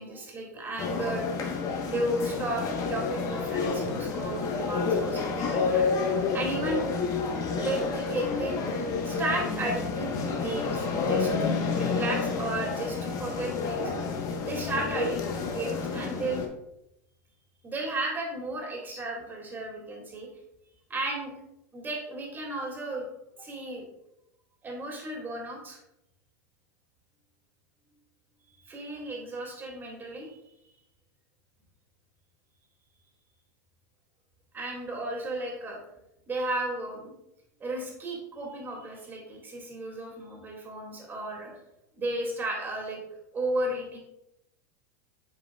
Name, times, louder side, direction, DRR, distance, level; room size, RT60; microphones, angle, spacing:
voice 1, 0.0-1.5 1.9-5.9 6.3-6.9 7.3-8.7 9.0-13.9 14.5-16.4 17.6-20.3 20.9-21.3 21.7-23.1 23.4-23.8 24.6-25.8 28.7-30.4 34.5-35.8 36.3-37.1 37.6-41.5 42.0-43.0 43.3-44.0, right 1 dB, 20° right, -1 dB, 2.4 m, -34 dB
sound 1, 0.8-16.5, left 4 dB, 40° left, 1.1 m, -29 dB
9.1 x 4.9 x 2.3 m, 0.84 s
hypercardioid pair, 120°, 9 cm